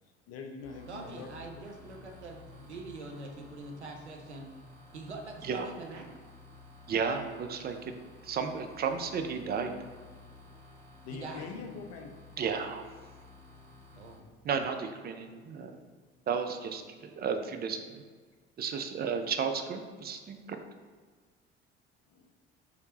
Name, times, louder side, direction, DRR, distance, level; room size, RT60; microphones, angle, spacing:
voice 1, 0.3-1.3 11.0-12.1 22.1-22.3, left 4 dB, 50° left, 4 dB, 0.7 m, -43 dB
sound 1, 0.6-14.1, left 3 dB, 65° right, 1.4 m, -53 dB
voice 2, 0.9-4.5 4.9-6.1 11.1-11.6 13.9-14.3 15.0-15.7, right 3 dB, 90° right, 2 dB, 0.5 m, -44 dB
voice 3, 6.9-7.9 8.2-9.7 12.4-12.8 14.4-15.7 16.3-18.0 18.6-20.6, right 6 dB, 30° right, 6 dB, 0.5 m, -33 dB
4.7 x 3.2 x 2.8 m, 1.5 s
figure-of-eight pair, 55°, 33 cm